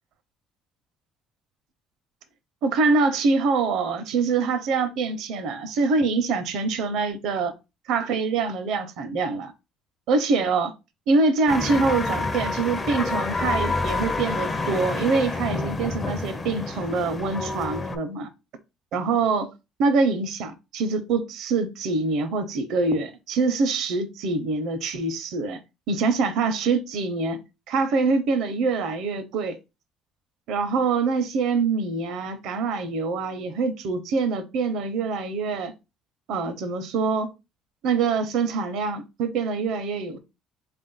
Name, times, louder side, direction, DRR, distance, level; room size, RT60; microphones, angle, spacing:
voice 1, 2.6-7.5 7.9-9.5 10.1-10.7 11.1-18.3 18.9-19.5 19.8-25.6 25.9-27.4 27.7-29.6 30.5-35.7 36.3-37.3 37.8-40.2, right 4 dB, 70° right, 0.7 m, -24 dB
sound 1, 11.5-18.0, left 3 dB, 15° left, 0.5 m, -28 dB
4.1 x 2.4 x 3.9 m
cardioid pair, 160°, 0 cm